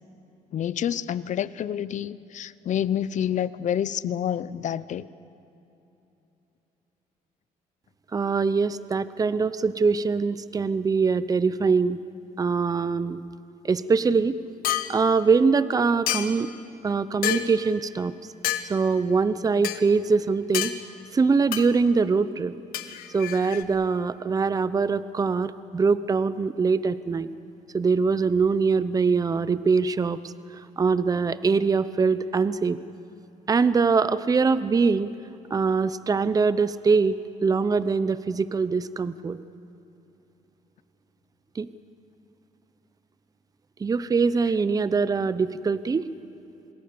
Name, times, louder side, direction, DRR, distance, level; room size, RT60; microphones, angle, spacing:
voice 1, 0.5-5.1, left 10 dB, 55° left, 17 dB, 0.7 m, -28 dB
voice 2, 8.1-12.0 12.4-13.2 13.6-14.4 14.9-16.5 16.8-18.1 18.7-20.7 21.1-22.5 23.1-27.3 27.7-32.8 33.5-35.1 35.5-39.4 41.6-41.7 43.8-46.1, right 4 dB, 25° right, 14 dB, 0.7 m, -23 dB
sound 1, 14.6-14.9 16.1-16.5 17.2-17.5 18.4-18.7 19.6-19.8 20.5-20.8 21.5-21.7 22.7-23.6, left 13 dB, 80° left, 1.3 m, -28 dB
27.0 x 20.5 x 6.9 m, 3.0 s
cardioid pair, 100°, 15 cm